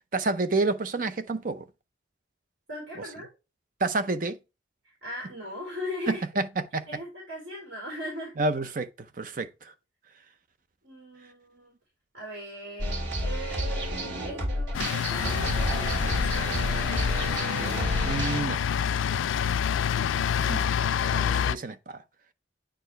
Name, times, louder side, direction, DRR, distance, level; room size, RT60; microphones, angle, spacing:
voice 1, 0.1-1.7 3.8-4.4 6.1-6.9 8.4-9.7 18.0-18.6 20.4-20.6 21.1-22.0, right 3 dB, 45° right, 0.6 m, -29 dB
voice 2, 2.7-3.3 4.8-6.2 6.9-8.3 10.8-11.8 12.1-13.9 14.2-16.6, equal, 70° right, 4.0 m, -39 dB
sound 1, 12.8-18.4, equal, 85° right, 2.6 m, -30 dB
sound 2, 14.7-21.6, left 8 dB, 85° left, 0.3 m, -27 dB
8.9 x 4.6 x 3.2 m
head